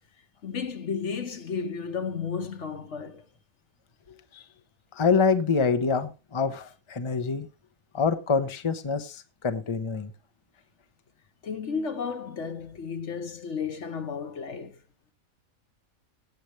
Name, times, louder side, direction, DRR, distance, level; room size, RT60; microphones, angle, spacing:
voice 1, 0.4-3.3 6.6-6.7 11.4-14.8, left 6 dB, 60° left, 1.4 m, -33 dB
voice 2, 5.0-7.5 7.9-10.1, left 5 dB, 25° left, 0.9 m, -26 dB
17.5 x 7.8 x 3.2 m
omnidirectional pair, 1.4 m